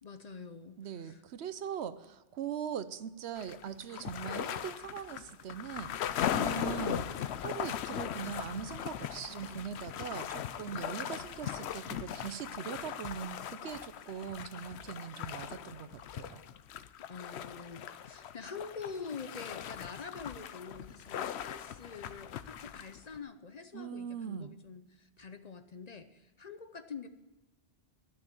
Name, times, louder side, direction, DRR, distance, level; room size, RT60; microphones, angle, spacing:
voice 1, 0.0-1.2 17.1-27.1, left 5 dB, 45° left, 9 dB, 0.6 m, -46 dB
voice 2, 0.8-7.1 7.4-16.4 23.7-24.5, right 8 dB, 80° right, 13 dB, 0.9 m, -41 dB
sound 1, 3.4-23.2, left 10 dB, 80° left, 0.9 m, -39 dB
12.5 x 6.6 x 8.8 m, 1.1 s
omnidirectional pair, 1.1 m